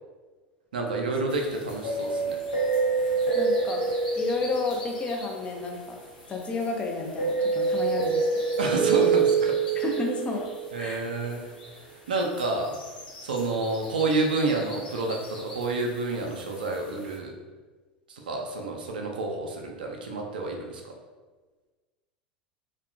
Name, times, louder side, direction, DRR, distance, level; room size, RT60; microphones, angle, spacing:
voice 1, 0.7-2.4 8.6-9.6 10.7-11.5 12.1-12.8 13.2-17.3 18.1-20.8, right 3 dB, 70° right, 2 dB, 0.4 m, -29 dB
sound 1, 1.3-6.6 7.1-11.3 11.6-11.7 12.1-15.8 16.3-16.7, right 4 dB, 70° left, 0.9 m, -27 dB
voice 2, 3.3-3.8 4.2-6.0 6.3-8.3 9.8-10.5 10.8-11.0, left 3 dB, 20° left, 1 dB, 0.4 m, -31 dB
2.7 x 2.2 x 2.5 m, 1.3 s
figure-of-eight pair, 80°, 5 cm